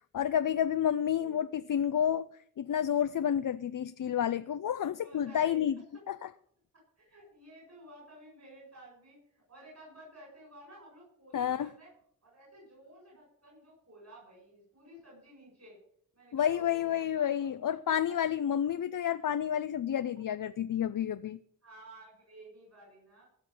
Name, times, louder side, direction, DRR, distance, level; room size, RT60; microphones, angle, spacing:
voice 1, 0.1-2.3 2.6-5.7 6.1-6.3 11.3-11.7 16.3-21.4, left 9 dB, 70° left, 0.5 m, -30 dB
voice 2, 5.0-5.7 5.9-6.0 6.7-11.9 12.2-15.8 16.1-18.2 20.4-20.5 21.6-23.3, right 1 dB, 55° right, 7.1 m, -54 dB
15.5 x 6.0 x 8.6 m
wide cardioid pair, 65°, 33 cm